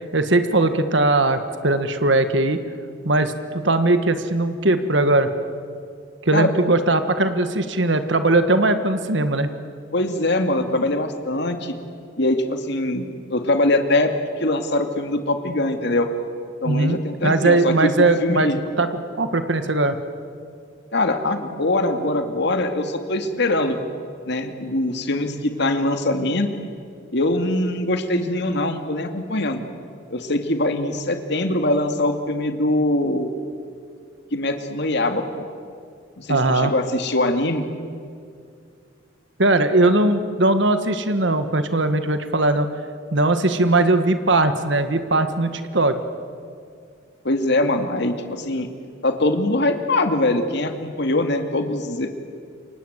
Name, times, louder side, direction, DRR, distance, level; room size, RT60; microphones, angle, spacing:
voice 1, 0.1-2.6 3.0-5.3 6.2-9.5 16.6-20.0 36.3-36.7 39.4-42.7 43.1-46.0, right 2 dB, 65° right, 9 dB, 1.6 m, -19 dB
voice 2, 6.3-6.7 9.9-11.7 12.2-14.1 14.4-16.1 16.6-18.6 20.9-23.8 24.3-26.5 27.1-29.6 30.1-33.3 34.3-35.5 36.2-37.7 47.2-48.7 49.0-52.1, left 2 dB, 60° left, 6 dB, 2.3 m, -22 dB
28.5 x 24.5 x 8.1 m, 2.3 s
head